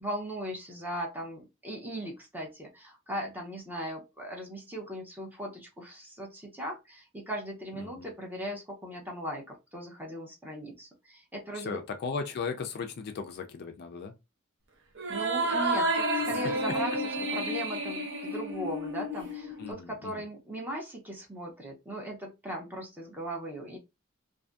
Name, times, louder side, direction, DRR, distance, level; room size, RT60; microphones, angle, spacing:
voice 1, 0.0-11.8 15.1-23.8, equal, 10° right, 0.7 m, -38 dB
voice 2, 7.8-8.1 11.6-14.1 19.6-20.2, left 5 dB, 45° left, 0.3 m, -37 dB
sound 1, 15.0-19.7, right 1 dB, 55° right, 0.7 m, -30 dB
2.5 x 2.5 x 2.2 m
head